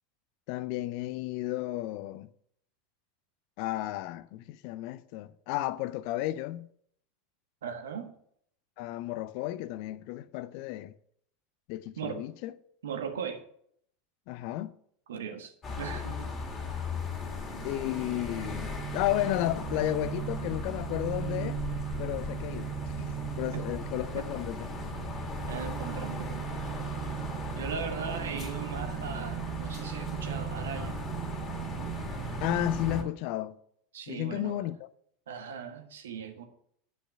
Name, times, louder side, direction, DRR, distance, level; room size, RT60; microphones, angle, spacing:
voice 1, 0.5-2.3 3.6-6.7 8.8-10.9 11.7-12.5 14.3-14.7 17.6-21.6 22.0-24.7 32.4-33.6 34.1-34.8, left 15 dB, 50° left, 0.5 m, -33 dB
voice 2, 7.6-8.1 12.0-12.2 12.8-13.4 15.1-16.3 23.5-23.6 24.2-24.4 25.5-26.7 27.5-31.0 33.9-34.7 35.3-36.5, right 7 dB, 65° right, 1.5 m, -38 dB
sound 1, 15.6-33.0, left 4 dB, 25° left, 2.0 m, -38 dB
sound 2, 16.3-33.1, right 13 dB, 40° right, 0.4 m, -38 dB
10.0 x 5.9 x 6.9 m
figure-of-eight pair, 80°, 0 cm